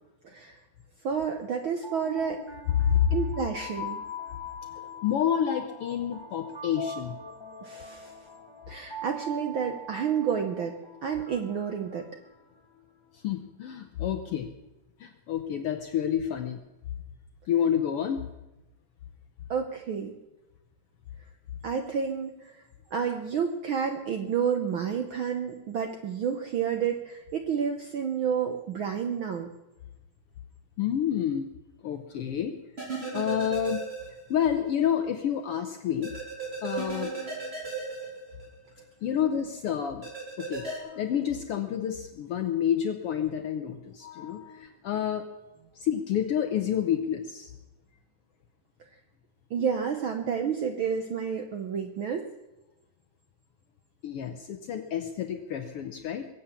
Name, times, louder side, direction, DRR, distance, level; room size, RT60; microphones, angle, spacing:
voice 1, 0.2-0.6 1.0-2.4 3.1-4.0 7.6-8.1 8.7-10.7 11.0-12.0 19.5-20.1 21.6-22.5 22.9-29.5 49.5-52.2, right 7 dB, 65° right, 5 dB, 1.3 m, -30 dB
sound 1, 1.6-12.7, left 1 dB, 15° left, 1.2 m, -42 dB
voice 2, 2.7-3.1 5.0-7.2 13.1-14.5 15.0-16.6 17.5-18.2 30.8-31.5 31.8-32.6 33.1-33.8 34.3-36.1 36.6-37.1 39.0-40.0 40.4-45.3 45.7-47.5 54.0-56.3, left 9 dB, 70° left, 7 dB, 1.4 m, -29 dB
sound 2, 32.8-34.5 34.8-34.9 36.0-38.8 40.0-40.8, right 4 dB, 20° right, 3.6 m, -35 dB
22.5 x 8.2 x 7.1 m, 1.0 s
omnidirectional pair, 3.5 m